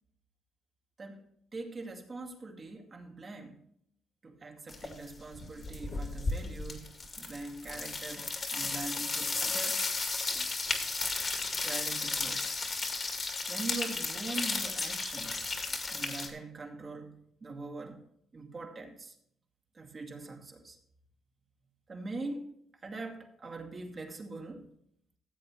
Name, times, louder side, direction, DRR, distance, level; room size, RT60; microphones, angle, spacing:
voice 1, 1.5-3.6 4.2-9.8 11.6-12.6 13.5-15.5 15.9-18.0 18.3-19.2 19.7-20.8 21.9-22.5 22.8-24.7, right 3 dB, 35° right, 2 dB, 2.4 m, -42 dB
sound 1, 4.7-5.1 5.3-16.3, left 3 dB, 40° left, 2.2 m, -34 dB
15.5 x 8.1 x 3.2 m, 0.69 s
cardioid pair, 90°, 0 cm